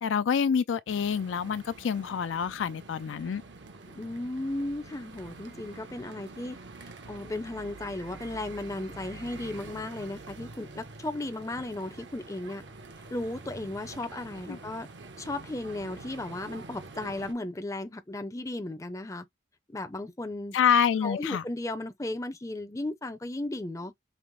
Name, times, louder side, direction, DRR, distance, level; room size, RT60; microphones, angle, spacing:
voice 1, 0.0-3.4 14.5-14.6 20.5-21.4, left 7 dB, 80° left, 0.4 m, -27 dB
sound 1, 0.9-17.3, right 3 dB, 65° right, 0.9 m, -46 dB
voice 2, 3.9-12.6 13.1-14.9 15.2-19.3 19.7-20.5 21.0-23.9, left 2 dB, 15° left, 0.5 m, -35 dB
5.3 x 2.0 x 3.1 m
head